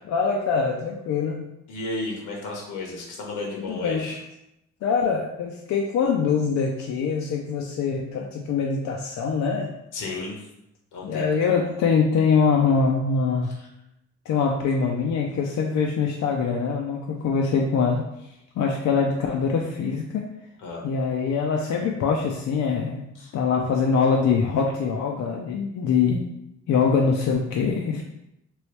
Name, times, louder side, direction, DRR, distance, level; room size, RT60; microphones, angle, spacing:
voice 1, 0.1-1.5 3.7-4.1 4.8-9.7 11.0-13.5 14.3-18.0 18.6-20.2 20.8-26.2 26.7-28.0, left 5 dB, 65° left, 0 dB, 0.5 m, -23 dB
voice 2, 1.7-4.2 9.9-10.5 10.9-11.7 13.4-13.7 20.6-20.8 23.1-23.4, left 2 dB, 85° left, -1 dB, 1.2 m, -34 dB
3.1 x 3.0 x 3.1 m, 0.84 s
cardioid pair, 90°, 30 cm